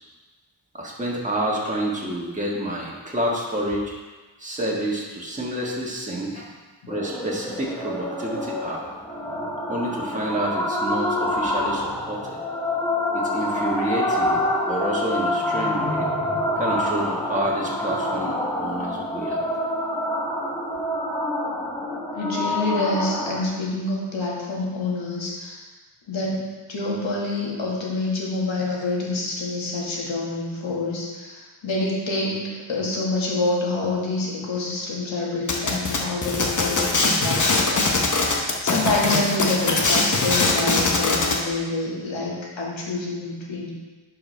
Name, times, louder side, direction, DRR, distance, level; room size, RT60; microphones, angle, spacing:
voice 1, 0.7-3.9 4.4-6.4 6.9-8.8 9.7-12.4 13.1-14.4 14.7-16.1 16.6-19.4, right 1 dB, 15° right, -4 dB, 1.7 m, -28 dB
sound 1, 6.9-23.4, left 1 dB, 10° left, 0.8 m, -27 dB
voice 2, 22.2-25.6 26.1-38.2 38.6-43.7, left 2 dB, 80° left, -4 dB, 1.9 m, -27 dB
sound 2, 35.5-41.4, left 3 dB, 40° left, 1.0 m, -22 dB
11.5 x 4.8 x 3.4 m, 1.3 s
wide cardioid pair, 85°, 45 cm